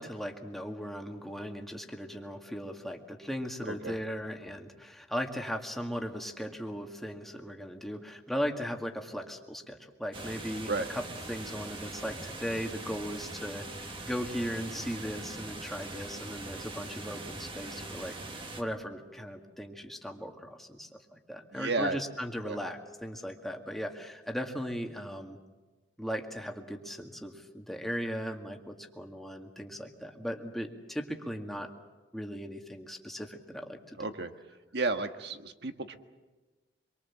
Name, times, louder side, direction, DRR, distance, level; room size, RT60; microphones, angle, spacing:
voice 1, 0.0-11.0 11.3-25.4 26.0-31.7 32.1-34.0, equal, ahead, 2 dB, 2.0 m, -38 dB
sound 1, 10.1-18.6, right 2 dB, 30° right, 1.8 m, -42 dB
voice 2, 21.5-22.0 22.4-22.6 34.0-34.3 34.7-36.0, right 3 dB, 60° right, 7 dB, 1.6 m, -32 dB
26.0 x 23.5 x 7.4 m, 1.2 s
head